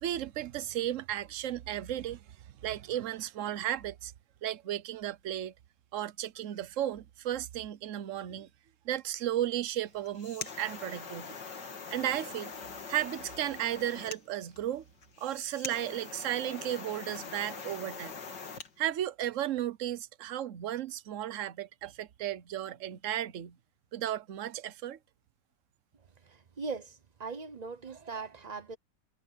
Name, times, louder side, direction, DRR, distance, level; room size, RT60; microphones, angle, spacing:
voice 1, 0.0-2.2 2.6-4.1 4.4-5.5 5.9-8.5 8.8-11.3 11.9-12.5 12.9-14.8 15.2-18.1 18.8-23.5 23.9-25.0, right 12 dB, 55° right, 1.1 m, -34 dB
sound 1, 9.9-18.7, left 5 dB, 90° left, 2.9 m, -43 dB
voice 2, 26.3-26.9 27.2-28.8, right 4 dB, 35° right, 0.7 m, -39 dB
omnidirectional pair, 1.8 m